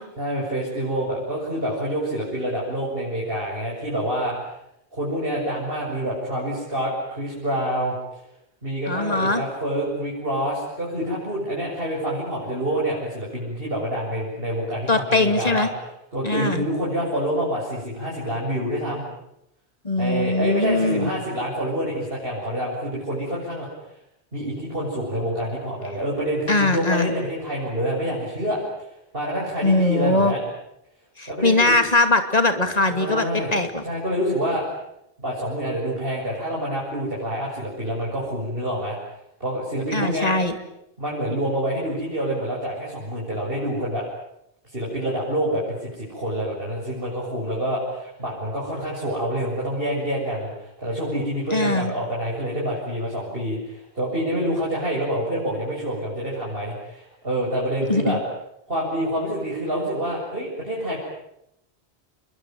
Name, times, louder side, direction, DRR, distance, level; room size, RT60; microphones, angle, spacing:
voice 1, 0.2-4.4 4.9-8.0 8.6-15.7 16.1-19.0 20.0-23.7 24.3-28.9 29.1-30.4 31.3-31.7 32.9-33.6 33.8-34.6 35.2-39.0 39.4-40.3 41.0-44.0 44.7-58.2 58.7-61.0, equal, 60° right, -6 dB, 7.7 m, -27 dB
voice 2, 8.9-9.4 14.9-15.7 16.2-16.6 19.8-21.1 26.5-27.1 29.6-30.3 31.2-33.3 33.5-33.8 39.9-40.5 51.5-51.9 57.9-58.2, left 2 dB, 35° left, 8 dB, 2.7 m, -21 dB
27.5 x 22.5 x 9.3 m, 0.79 s
omnidirectional pair, 1.1 m